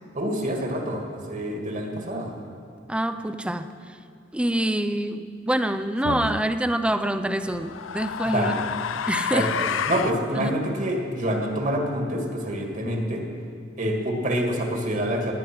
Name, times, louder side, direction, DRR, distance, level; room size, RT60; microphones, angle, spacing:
voice 1, 0.1-1.0 1.3-2.3 8.2-8.5 9.3-13.2 13.8-15.3, equal, 40° right, 2 dB, 2.0 m, -26 dB
voice 2, 2.9-3.7 4.3-8.6 9.1-9.5 10.4-10.5, right 1 dB, 5° right, 10 dB, 0.5 m, -26 dB
sound 1, 6.0-6.4 7.4-10.2, left 7 dB, 85° left, 0.5 m, -29 dB
18.5 x 9.6 x 6.1 m, 2.3 s
head